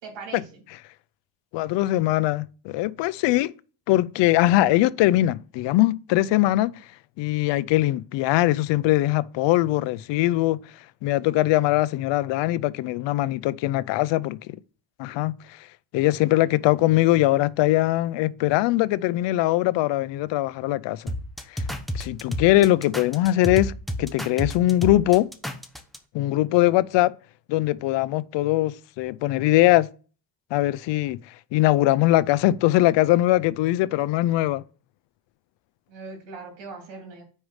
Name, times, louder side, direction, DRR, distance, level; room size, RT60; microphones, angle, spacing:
voice 1, 0.0-0.6 35.9-37.2, right 4 dB, 90° right, 3.1 m, -40 dB
voice 2, 1.5-3.5 3.9-6.7 7.2-10.6 11.0-14.6 15.0-15.3 15.9-21.1 21.5-21.6 21.9-23.7 24.0-25.3 26.1-27.1 27.5-29.9 30.5-31.2 31.5-34.6, left 16 dB, 85° left, 0.5 m, -21 dB
sound 1, 21.1-26.0, equal, ahead, 0.7 m, -31 dB
5.4 x 4.8 x 6.3 m
cardioid pair, 115°, 42 cm